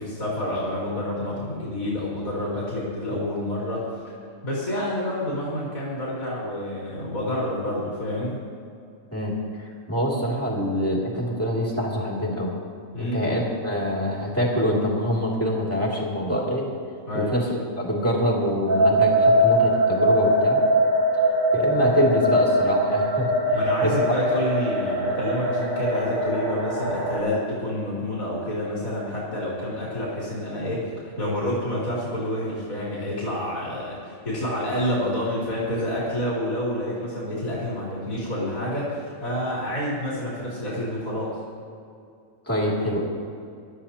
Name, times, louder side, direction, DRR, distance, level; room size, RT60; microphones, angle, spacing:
voice 1, 0.0-3.9 4.4-8.4 12.9-13.4 17.1-17.3 23.5-41.4, left 1 dB, 85° left, -7 dB, 3.7 m, -28 dB
voice 2, 9.1-12.5 13.0-16.7 17.1-20.6 21.5-23.9 42.5-43.0, equal, 10° left, -5 dB, 2.7 m, -25 dB
sound 1, 18.7-27.2, right 1 dB, 75° right, 2.3 m, -22 dB
22.0 x 13.0 x 2.9 m, 2.4 s
omnidirectional pair, 1.4 m